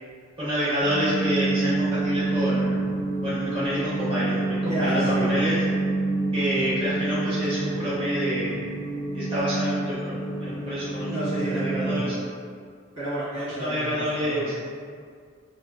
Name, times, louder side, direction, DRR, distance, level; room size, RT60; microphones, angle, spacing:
voice 1, 0.4-2.8 3.2-5.6 6.3-8.5 9.1-12.1 13.6-14.5, equal, 25° right, -10 dB, 0.5 m, -28 dB
sound 1, 0.8-12.0, right 2 dB, 90° left, 0.5 m, -27 dB
voice 2, 4.6-5.4 11.1-12.2 12.9-14.5, right 1 dB, 80° right, -12 dB, 1.4 m, -31 dB
2.9 x 2.0 x 2.3 m, 2.1 s
head